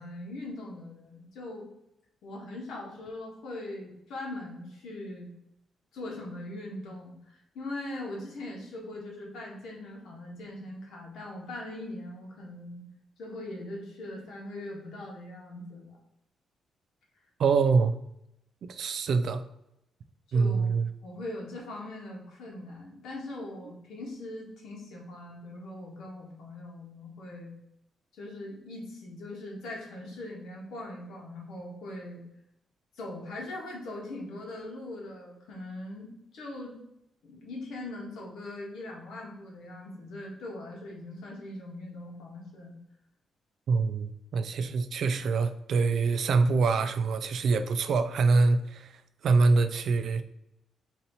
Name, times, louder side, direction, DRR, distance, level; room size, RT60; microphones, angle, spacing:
voice 1, 0.0-1.7 2.2-5.3 5.9-12.9 13.2-16.0 20.3-20.7 21.0-27.5 28.1-32.2 33.0-36.8 37.2-42.8, left 1 dB, 90° left, 1.4 m, -41 dB
voice 2, 17.4-18.0 18.6-19.4 20.3-20.9 43.7-48.9 49.2-50.2, right 4 dB, 55° right, 0.3 m, -25 dB
4.2 x 2.8 x 4.1 m
cardioid pair, 175°, 0 cm